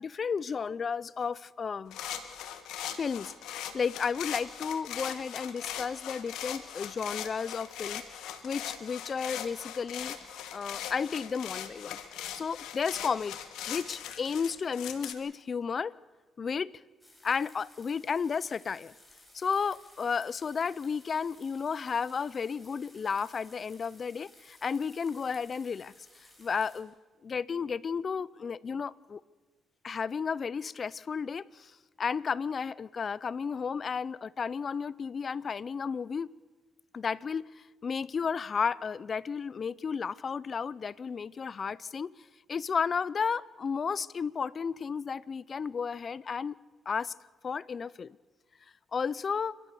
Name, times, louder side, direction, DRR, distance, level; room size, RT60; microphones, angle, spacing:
voice 1, 0.0-2.0 2.9-3.3 3.7-8.0 8.4-10.2 10.5-12.0 12.3-13.4 13.7-15.9 16.4-16.7 17.2-18.9 19.3-25.9 26.4-26.9 27.2-29.2 29.8-31.7 32.0-36.3 36.9-42.1 42.5-46.5 46.9-47.1 47.4-48.2 48.9-49.6, left 6 dB, 45° left, 0.6 m, -33 dB
sound 1, 1.9-15.1, left 10 dB, 85° left, 1.7 m, -40 dB
sound 2, 17.0-26.8, left 1 dB, 5° left, 4.9 m, -58 dB
29.0 x 13.0 x 6.9 m
cardioid pair, 90°, 0 cm